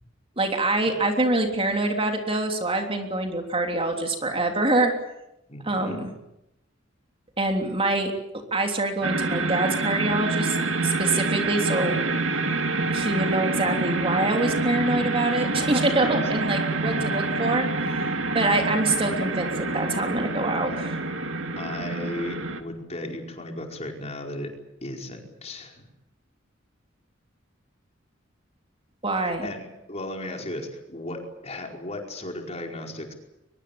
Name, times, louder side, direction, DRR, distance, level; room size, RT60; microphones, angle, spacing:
voice 1, 0.4-4.9 5.6-6.1 7.4-8.1 8.5-10.6 10.8-12.0 12.9-17.7 18.3-21.0 29.0-29.5, right 2 dB, 30° right, 3 dB, 3.3 m, -25 dB
voice 2, 5.5-6.1 16.0-16.2 16.9-17.1 20.7-20.8 21.6-24.5 24.8-25.9 29.2-33.1, left 1 dB, 35° left, 2 dB, 4.8 m, -36 dB
sound 1, 9.0-22.6, right 3 dB, 85° right, 2.4 m, -27 dB
23.0 x 22.0 x 8.7 m, 0.88 s
head